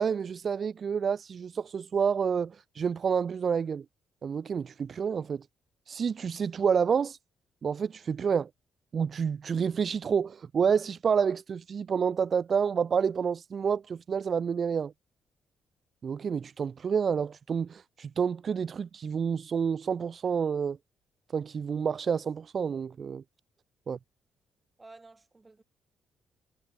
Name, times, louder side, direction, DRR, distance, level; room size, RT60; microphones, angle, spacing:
voice 1, 0.0-3.8 4.2-5.5 5.9-7.2 7.6-8.5 8.9-14.9 16.0-20.8 21.3-23.2 23.9-24.0, right 6 dB, 45° right, 1.2 m, -29 dB
voice 2, 24.8-25.6, right 3 dB, 20° right, 5.1 m, -52 dB
cardioid pair, 90°, 0 cm